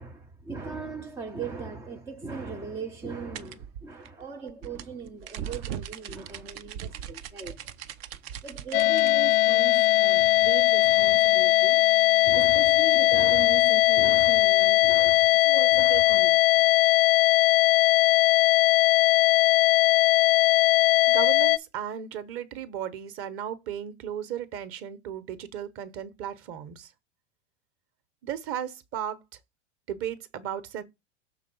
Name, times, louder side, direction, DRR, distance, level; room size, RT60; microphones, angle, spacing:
voice 1, 0.0-7.8 8.4-11.8 12.2-16.8, right 4 dB, 10° right, 0.3 m, -39 dB
sound 1, 3.3-9.1, right 10 dB, 55° right, 0.8 m, -39 dB
sound 2, 8.7-21.6, left 17 dB, 50° left, 0.4 m, -20 dB
voice 2, 21.1-26.9 28.2-29.2 29.9-30.8, right 9 dB, 35° right, 1.1 m, -35 dB
6.7 x 3.8 x 5.4 m
hypercardioid pair, 120°, 37 cm